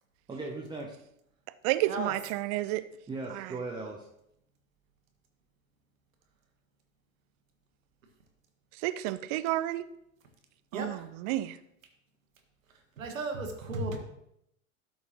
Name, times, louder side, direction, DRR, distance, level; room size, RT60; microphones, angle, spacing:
voice 1, 0.3-0.9 3.1-4.1, right 3 dB, 10° right, 0 dB, 0.9 m, -38 dB
voice 2, 1.6-2.9 3.3-3.6 8.7-9.9 10.7-11.6, right 16 dB, 30° right, 14 dB, 0.4 m, -31 dB
voice 3, 10.7-11.1 13.0-14.0, right 2 dB, 70° right, 5 dB, 1.6 m, -34 dB
12.5 x 5.6 x 3.0 m, 0.77 s
figure-of-eight pair, 85°, 41 cm